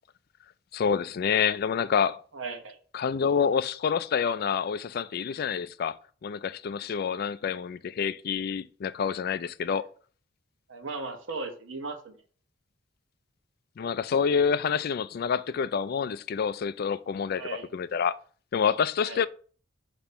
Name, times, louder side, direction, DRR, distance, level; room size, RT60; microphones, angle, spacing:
voice 1, 0.7-2.2 2.9-6.0 6.2-9.8 13.8-18.2 18.5-19.3, left 6 dB, 50° left, 0.3 m, -27 dB
voice 2, 2.3-2.8 9.8-9.9 10.7-12.2 17.4-17.7 19.0-19.2, right 3 dB, 80° right, 1.1 m, -37 dB
6.8 x 3.0 x 5.5 m
head